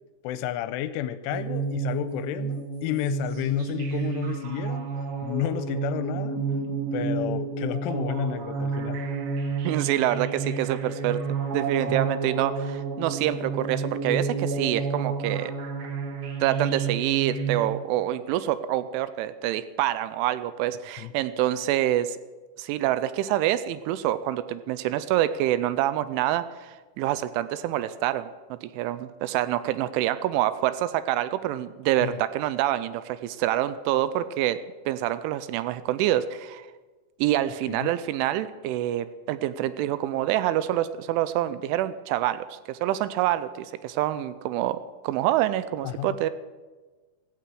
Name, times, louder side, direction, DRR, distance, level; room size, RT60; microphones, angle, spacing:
voice 1, 0.2-4.9 5.2-6.4 6.9-9.0 11.9-12.0 21.0-21.1 32.0-32.2 37.7-37.9 45.8-46.2, left 12 dB, 85° left, 14 dB, 3.0 m, -31 dB
sound 1, 1.3-17.6, right 5 dB, 60° right, 2.8 m, -30 dB
voice 2, 9.6-11.2 11.5-15.5 16.4-22.2 22.6-28.3 28.6-34.6 34.9-36.7 37.2-44.8 45.0-46.3, right 13 dB, 85° right, 14 dB, 3.0 m, -26 dB
16.0 x 14.5 x 4.8 m, 1.3 s
omnidirectional pair, 5.7 m